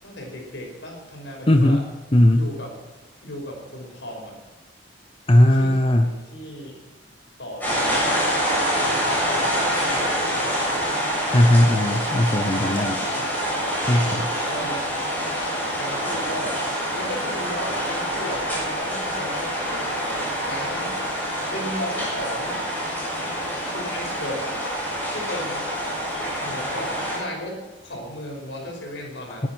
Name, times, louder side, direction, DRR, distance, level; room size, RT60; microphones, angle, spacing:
voice 1, 0.0-1.8 2.3-2.7 3.2-4.4 5.3-6.8 7.4-8.3 8.8-11.0 13.1-13.4 14.0-14.9 15.8-16.6 16.9-19.9 20.4-21.0 21.5-22.6 23.7-24.6 25.1-25.7 26.4-29.5, equal, 70° left, 1 dB, 5.7 m, -36 dB
voice 2, 1.5-2.5 5.3-6.1 11.3-13.0 13.9-14.2, left 1 dB, 30° left, 6 dB, 0.8 m, -18 dB
sound 1, 7.6-27.2, equal, 10° left, 7.0 m, -26 dB
20.5 x 9.9 x 6.2 m, 1.2 s
head